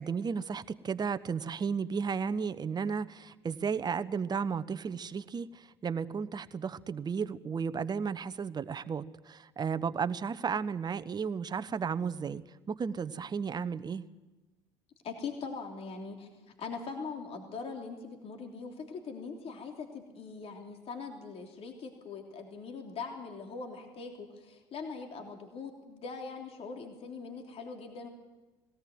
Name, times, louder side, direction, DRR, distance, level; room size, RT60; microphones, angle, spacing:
voice 1, 0.0-12.4 12.7-14.0, right 6 dB, 30° right, 13 dB, 0.9 m, -34 dB
voice 2, 15.0-16.3 16.6-28.1, left 4 dB, 45° left, 3 dB, 3.2 m, -41 dB
20.5 x 18.0 x 7.8 m, 1.1 s
hypercardioid pair, 65°, 14 cm